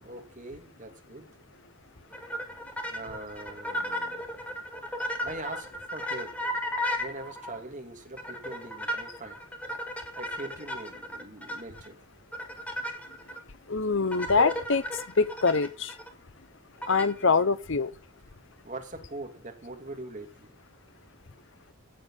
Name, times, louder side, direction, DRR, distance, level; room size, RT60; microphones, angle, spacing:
voice 1, 0.0-1.3 2.9-4.2 5.2-6.4 7.0-9.4 10.1-12.0 18.6-20.6, right 2 dB, 35° right, 2.7 m, -42 dB
sound 1, 2.1-7.6 8.2-11.9 12.3-13.4 14.1-16.1 16.8-17.2, equal, 5° left, 1.9 m, -35 dB
voice 2, 13.7-14.8 15.2-15.9 16.9-17.9, left 4 dB, 60° left, 0.9 m, -24 dB
16.5 x 7.3 x 5.7 m
head